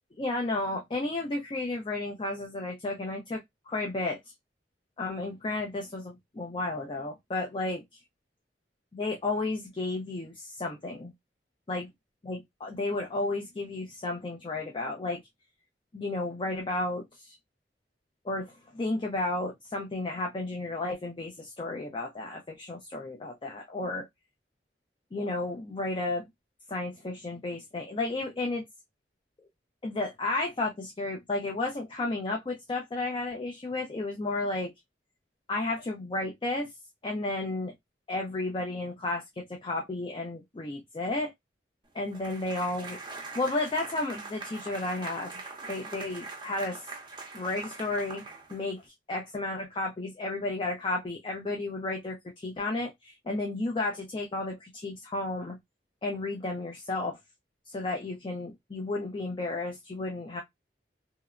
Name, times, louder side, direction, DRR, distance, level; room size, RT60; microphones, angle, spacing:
voice 1, 0.2-4.2 5.0-8.0 8.9-11.1 11.7-11.9 12.2-15.2 15.9-17.4 18.2-24.1 25.1-26.3 26.7-28.6 29.8-34.7 35.5-36.7 37.0-37.7 38.1-41.3 41.9-45.4 45.7-46.9 47.3-48.8 49.1-55.6 56.0-57.2 57.7-60.4, left 2 dB, 30° left, 0.4 m, -33 dB
sound 1, 42.1-48.9, right 3 dB, 25° right, 0.6 m, -42 dB
2.8 x 2.1 x 2.4 m
head